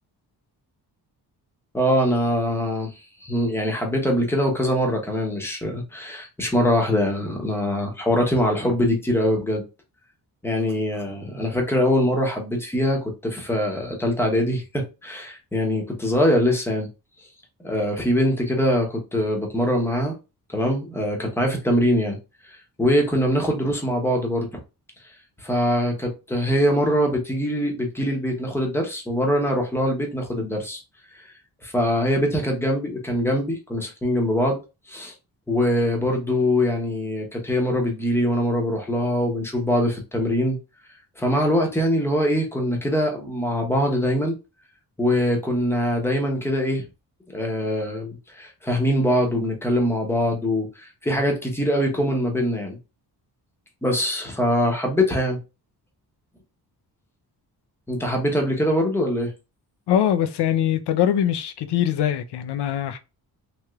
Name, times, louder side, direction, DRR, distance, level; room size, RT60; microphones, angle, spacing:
voice 1, 1.7-9.6 10.4-16.9 17.6-20.1 20.5-22.2 22.4-24.6 25.4-30.8 31.1-31.3 31.6-34.6 34.9-35.1 35.5-40.6 41.2-44.3 45.0-46.8 47.3-52.8 53.8-55.4 57.9-59.3, equal, 5° left, 0.7 m, -23 dB
voice 2, 59.9-63.0, left 10 dB, 85° left, 0.5 m, -22 dB
3.1 x 2.9 x 2.3 m
wide cardioid pair, 155°, 39 cm